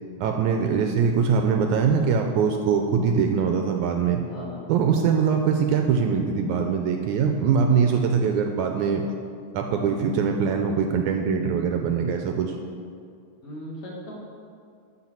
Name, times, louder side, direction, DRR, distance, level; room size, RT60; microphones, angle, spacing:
voice 1, 0.2-4.2 4.7-9.0 9.5-12.6, right 6 dB, 80° right, 4 dB, 1.9 m, -22 dB
voice 2, 4.3-4.7 9.8-10.1 13.4-14.2, left 1 dB, 50° left, -5 dB, 2.5 m, -38 dB
12.0 x 4.5 x 7.3 m, 2.3 s
omnidirectional pair, 3.8 m